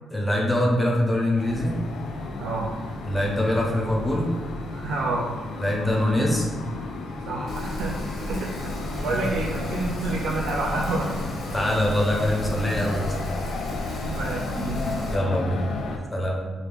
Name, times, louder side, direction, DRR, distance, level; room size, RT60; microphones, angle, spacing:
voice 1, 0.1-1.8 3.0-4.3 5.6-6.5 9.1-9.2 11.5-13.2 15.1-15.6 16.1-16.4, left 1 dB, 10° left, -2 dB, 0.5 m, -24 dB
sound 1, 1.4-16.0, left 3 dB, 75° left, 0.4 m, -33 dB
voice 2, 2.4-2.7 4.7-5.3 7.3-11.1 14.0-14.9, right 2 dB, 85° right, -2 dB, 0.3 m, -29 dB
Rain, 7.5-15.1, equal, 40° left, 0.8 m, -34 dB
2.9 x 2.5 x 3.3 m, 1.4 s
cardioid pair, 145°, 0 cm